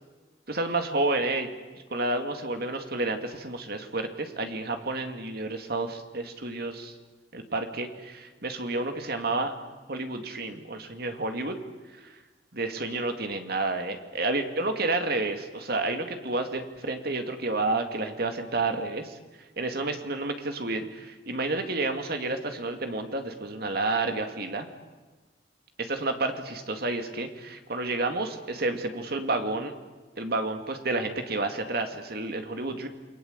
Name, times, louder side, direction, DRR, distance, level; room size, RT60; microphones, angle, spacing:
voice 1, 0.5-1.5 1.9-6.9 7.3-9.5 9.9-11.6 11.9-12.1 12.5-19.2 19.6-24.7 25.8-29.7 30.2-32.9, right 2 dB, 55° right, 6 dB, 2.5 m, -30 dB
28.5 x 21.5 x 8.2 m, 1.3 s
head